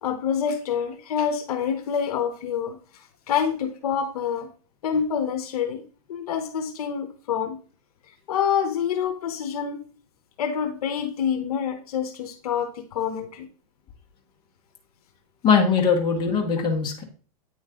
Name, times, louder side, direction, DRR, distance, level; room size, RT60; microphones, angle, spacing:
voice 1, 0.0-2.8 3.3-4.5 4.8-5.8 6.1-7.6 8.3-9.8 10.4-13.5, left 7 dB, 70° left, 6 dB, 1.0 m, -27 dB
voice 2, 15.4-17.0, left 5 dB, 25° left, 1 dB, 1.3 m, -21 dB
9.2 x 3.1 x 3.7 m, 0.40 s
hypercardioid pair, 140°, 20 cm